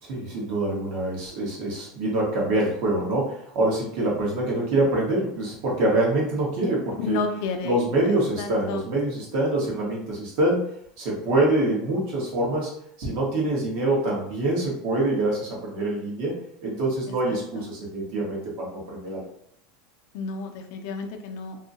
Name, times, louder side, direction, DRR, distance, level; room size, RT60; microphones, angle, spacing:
voice 1, 0.0-7.2 7.6-10.6 11.0-12.7 13.0-16.3 16.6-19.3, right 2 dB, 60° right, -3 dB, 1.2 m, -25 dB
voice 2, 7.0-7.8 8.4-8.8 17.3-17.7 20.1-21.6, left 5 dB, 65° left, 4 dB, 0.4 m, -31 dB
2.7 x 2.6 x 2.5 m, 0.68 s
supercardioid pair, 155°, 0 cm